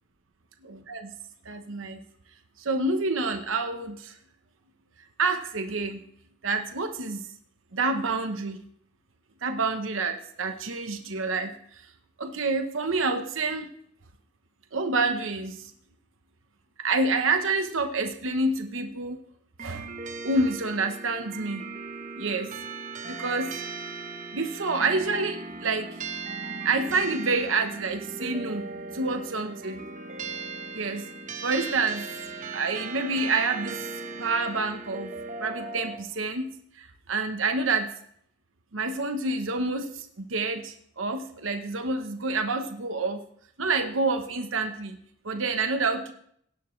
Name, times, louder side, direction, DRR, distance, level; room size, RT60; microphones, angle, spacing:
voice 1, 0.6-1.1 1.4-2.0 2.6-4.2 5.2-6.0 6.4-7.3 7.7-8.6 9.4-11.8 12.2-13.7 14.7-15.7 16.8-19.2 19.6-19.9 20.2-21.6 22.1-22.5 23.1-23.6 24.3-25.9 26.6-29.8 30.7-31.1 31.4-32.1 32.5-33.9 34.2-35.1 35.4-37.9 38.7-43.2 43.6-45.0 45.2-46.1, right 3 dB, 80° right, 6 dB, 1.1 m, -28 dB
sound 1, 19.6-36.0, right 4 dB, 40° right, 1.1 m, -38 dB
17.5 x 11.0 x 3.3 m, 0.68 s
head